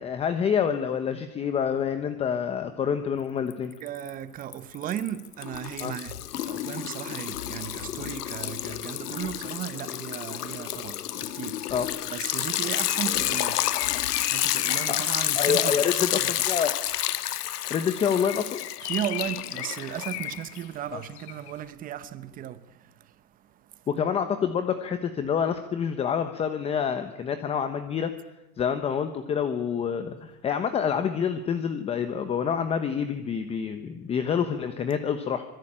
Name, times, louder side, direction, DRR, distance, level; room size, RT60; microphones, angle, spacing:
voice 1, 0.0-3.7 5.8-5.9 11.7-11.9 14.9-15.0 15.3-16.7 17.7-18.6 20.9-21.0 23.9-28.1 28.6-35.4, left 7 dB, 15° left, 1.1 m, -27 dB
Liquid, 3.5-4.1 4.4-20.6, left 12 dB, 85° left, 1.8 m, -30 dB
voice 2, 3.8-11.7 12.1-16.3 18.8-23.8, right 11 dB, 20° right, 1.0 m, -36 dB
Bird, 12.4-16.5 18.1-21.6, left 16 dB, 45° left, 1.3 m, -38 dB
26.0 x 21.5 x 8.9 m
supercardioid pair, 160°, 46 cm